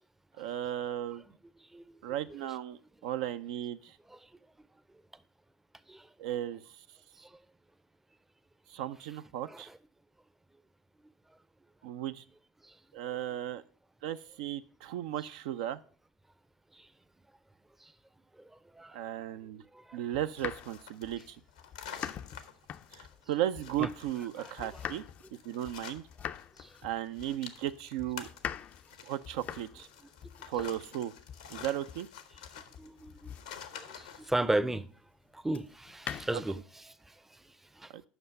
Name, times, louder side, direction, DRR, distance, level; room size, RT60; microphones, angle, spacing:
voice 1, 0.4-1.2 2.0-4.0 6.2-6.6 8.7-9.7 11.8-12.2 12.9-13.6 14.0-15.8 18.9-19.6 19.9-21.4 22.9-25.0 25.4-26.0 26.8-28.3 29.0-29.9 30.5-31.1 31.5-32.1 37.9-38.0, right 12 dB, 75° right, 0.4 m, -35 dB
voice 2, 9.4-9.8 12.6-12.8 16.7-16.9 17.8-17.9 18.4-20.0 23.8-23.9 24.4-24.8 26.6-26.8 32.8-33.4 33.7-34.9 35.3-37.9, right 1 dB, 10° right, 0.5 m, -37 dB
sound 1, 20.1-24.3 24.6-34.5 35.5-36.6, left 9 dB, 45° left, 0.4 m, -44 dB
sound 2, 20.5-26.6 26.9-34.3, left 8 dB, 85° left, 0.8 m, -49 dB
7.9 x 5.5 x 5.2 m
hypercardioid pair, 75°, 4 cm